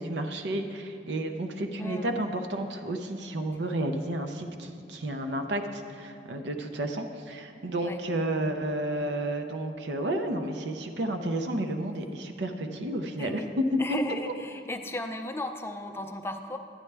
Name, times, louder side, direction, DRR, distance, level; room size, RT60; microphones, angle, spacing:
voice 1, 0.0-14.0 14.3-14.4, right 1 dB, 80° right, 5 dB, 0.7 m, -31 dB
voice 2, 1.8-2.1 7.8-8.0 13.1-13.5 13.8-16.6, left 1 dB, 15° left, 5 dB, 0.4 m, -36 dB
10.5 x 9.5 x 3.4 m, 2.6 s
head